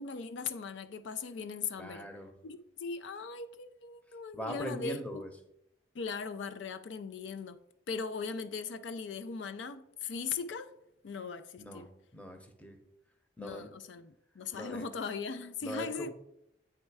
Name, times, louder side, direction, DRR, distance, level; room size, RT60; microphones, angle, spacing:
voice 1, 0.0-2.0 2.4-5.2 5.9-7.6 7.9-10.7 11.0-11.8 13.4-16.1, left 5 dB, 80° left, 0.4 m, -39 dB
voice 2, 1.8-2.3 4.3-5.3 11.6-11.9 12.1-12.8 13.4-13.7 14.5-14.8 15.6-16.1, equal, 10° left, 0.7 m, -41 dB
8.4 x 3.2 x 4.7 m
head